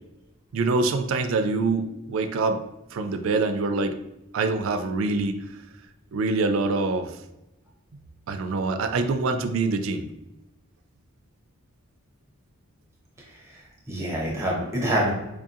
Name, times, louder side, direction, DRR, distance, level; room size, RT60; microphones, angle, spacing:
voice 1, 0.5-2.6 2.9-3.9 4.3-5.4 6.1-7.1 8.3-10.1, right 3 dB, 65° right, 8 dB, 0.3 m, -25 dB
voice 2, 13.2-15.1, equal, 15° right, -3 dB, 0.6 m, -27 dB
4.5 x 2.7 x 2.4 m, 0.96 s
head